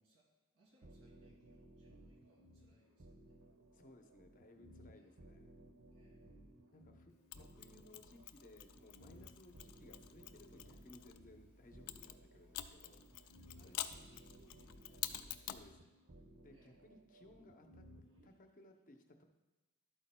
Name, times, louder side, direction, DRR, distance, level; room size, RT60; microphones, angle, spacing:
voice 1, 0.0-3.4 4.9-5.2 5.9-7.5 13.5-15.9 16.5-16.9 18.1-18.3, right 1 dB, 60° right, -3 dB, 2.7 m, -72 dB
sound 1, 0.8-18.3, right 1 dB, 80° right, 1.0 m, -60 dB
voice 2, 3.7-5.5 6.7-13.8 15.5-15.8 16.3-17.9 18.2-19.2, left 1 dB, 35° left, 4 dB, 0.7 m, -62 dB
Mechanisms, 7.3-11.2 11.9-15.7, left 12 dB, 75° left, 0.4 m, -48 dB
sound 2, 8.0-15.7, equal, 10° right, 1.0 m, -68 dB
12.0 x 8.4 x 2.2 m, 1.1 s
head